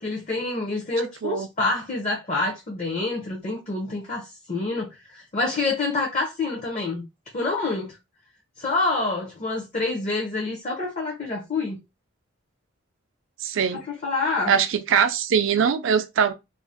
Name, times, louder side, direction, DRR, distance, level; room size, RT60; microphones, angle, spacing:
voice 1, 0.0-7.0 7.3-8.0 8.6-11.8 13.9-14.6, left 3 dB, 35° left, 0.5 m, -27 dB
voice 2, 13.4-13.8 14.5-16.3, right 7 dB, 65° right, 0.4 m, -22 dB
2.5 x 2.0 x 3.4 m
head